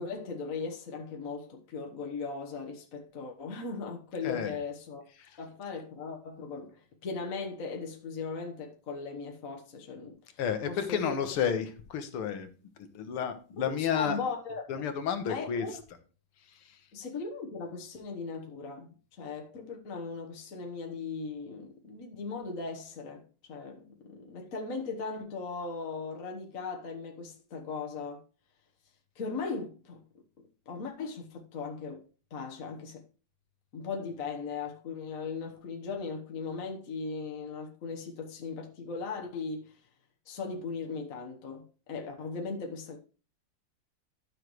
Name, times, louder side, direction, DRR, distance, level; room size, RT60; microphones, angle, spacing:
voice 1, 0.0-5.0 5.4-10.2 10.7-11.2 13.7-14.6 15.3-15.7 16.9-23.2 23.5-28.2 29.1-30.0 30.7-32.0 32.3-33.0 33.7-39.7 40.3-43.0, left 4 dB, 45° left, 1.4 m, -38 dB
voice 2, 4.2-4.6 5.2-5.4 10.4-12.5 12.8-14.2 14.7-15.8 16.5-16.8, left 7 dB, 80° left, 2.1 m, -32 dB
12.0 x 6.5 x 3.1 m
omnidirectional pair, 2.4 m